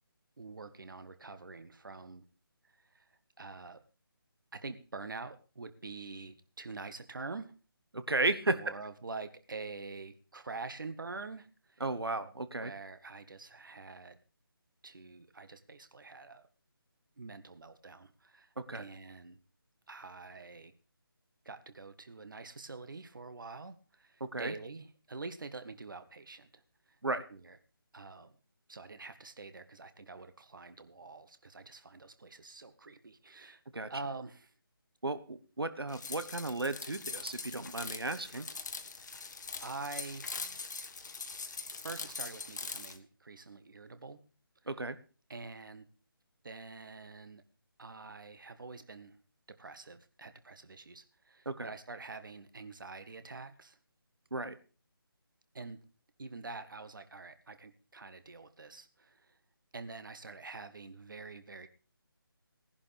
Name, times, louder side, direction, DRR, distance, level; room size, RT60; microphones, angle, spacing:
voice 1, 0.4-2.2 2.6-3.1 3.4-3.8 4.5-7.5 8.5-11.8 12.6-14.2 14.8-16.4 17.2-19.4 19.9-20.7 21.4-26.6 26.9-27.0 27.3-27.6 27.9-28.3 28.7-33.6 33.9-34.5 38.9-39.3 39.6-40.7 41.8-44.2 45.3-45.8 46.4-47.4 47.8-49.2 49.5-53.8 55.5-55.8 56.2-59.4 59.7-61.7, right 3 dB, 60° right, 11 dB, 1.5 m, -46 dB
voice 2, 7.9-8.6 11.8-12.7 18.6-18.8 24.2-24.5 27.0-27.2 33.7-33.9 35.0-38.5 44.7-45.0 51.4-51.7 54.3-54.5, right 2 dB, 75° right, 13 dB, 1.4 m, -34 dB
sound 1, 35.9-43.0, left 4 dB, 50° left, 1.3 m, -42 dB
18.0 x 11.0 x 3.5 m, 0.36 s
figure-of-eight pair, 155°, 12 cm